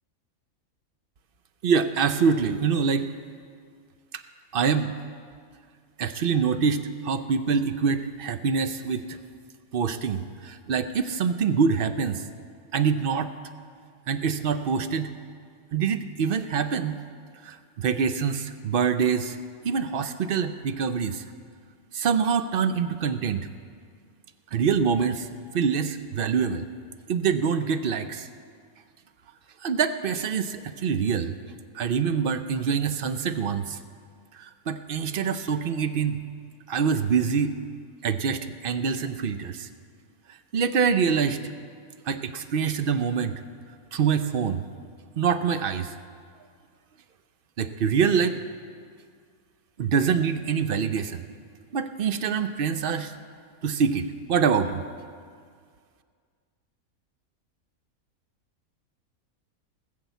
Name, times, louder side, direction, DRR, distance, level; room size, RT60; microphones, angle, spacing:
voice 1, 1.6-3.1 4.5-4.9 6.0-9.2 9.7-12.2 12.7-13.4 14.1-15.1 15.7-17.0 17.4-19.4 19.6-21.2 21.9-23.5 24.5-25.3 25.5-26.6 27.1-28.3 29.6-31.4 31.7-33.8 34.3-36.2 36.7-37.6 38.0-39.7 40.5-41.4 42.1-43.3 43.9-44.6 45.2-45.9 47.6-48.4 49.8-51.3 51.7-53.1 53.6-54.8, right 6 dB, 60° right, 10 dB, 0.6 m, -25 dB
18.5 x 6.8 x 8.1 m, 2.1 s
omnidirectional pair, 1.5 m